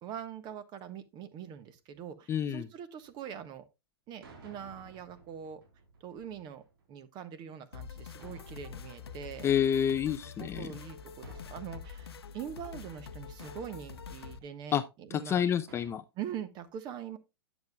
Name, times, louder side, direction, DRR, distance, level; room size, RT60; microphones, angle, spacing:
voice 1, 0.0-3.6 4.1-5.6 6.0-6.6 6.9-9.5 10.4-15.4 16.2-17.2, right 9 dB, 35° right, 1.2 m, -43 dB
voice 2, 2.3-2.7 9.4-10.7 14.7-14.8 15.1-16.0, left 9 dB, 20° left, 0.4 m, -28 dB
sound 1, 3.0-3.3 4.2-6.9 8.2-9.9 11.2-12.2 13.4-14.1 15.7-15.9, right 3 dB, 60° right, 3.5 m, -56 dB
sound 2, 7.7-14.4, left 6 dB, 75° left, 0.7 m, -46 dB
10.5 x 7.1 x 2.3 m
figure-of-eight pair, 105°, 13 cm